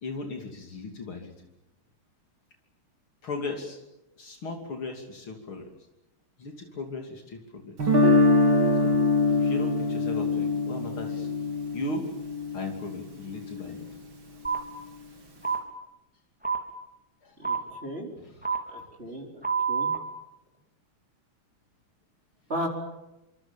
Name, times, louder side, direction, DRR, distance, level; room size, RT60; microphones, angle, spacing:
voice 1, 0.0-1.3 3.2-3.8 4.2-5.7 6.4-7.7 8.8-9.0 9.3-11.3 11.7-12.1 12.5-13.9 17.2-17.3 18.2-18.7, left 3 dB, 70° left, 3 dB, 3.6 m, -37 dB
Guitar, 7.8-13.8, left 2 dB, 65° right, 4.5 m, -24 dB
sound 1, 14.4-14.6 15.4-15.6 16.4-16.6 17.4-17.6 18.4-18.6 19.4-20.0, right 5 dB, 5° right, 3.6 m, -26 dB
voice 2, 17.4-18.1 18.7-19.4 19.7-19.9 22.5-22.7, equal, 25° right, 0 dB, 4.5 m, -35 dB
27.0 x 25.5 x 7.3 m, 0.95 s
omnidirectional pair, 2.4 m